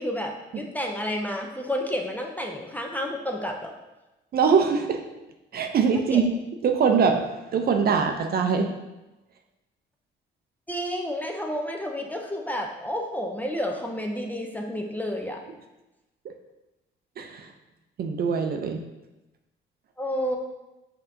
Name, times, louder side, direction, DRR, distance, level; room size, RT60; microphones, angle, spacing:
voice 1, 0.0-3.7 5.9-6.2 10.7-15.4 20.0-20.4, equal, 10° left, 1 dB, 0.5 m, -30 dB
voice 2, 4.3-5.0 5.5-6.4 6.6-7.2 7.5-8.7 17.2-17.5 18.0-18.8, right 6 dB, 50° right, 5 dB, 0.5 m, -22 dB
5.3 x 2.8 x 2.6 m, 1.0 s
cardioid pair, 90°, 20 cm